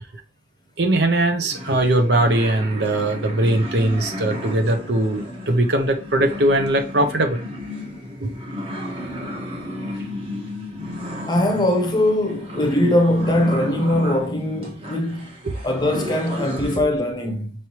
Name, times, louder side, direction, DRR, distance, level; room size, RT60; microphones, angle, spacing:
voice 1, 0.8-7.4 8.2-8.3 15.4-15.5, right 1 dB, 65° right, 0.7 m, -20 dB
sound 1, 1.5-16.8, equal, 30° right, 1.0 m, -33 dB
voice 2, 11.3-15.3 15.6-17.5, left 1 dB, 25° left, 0.7 m, -21 dB
5.5 x 3.2 x 2.9 m
head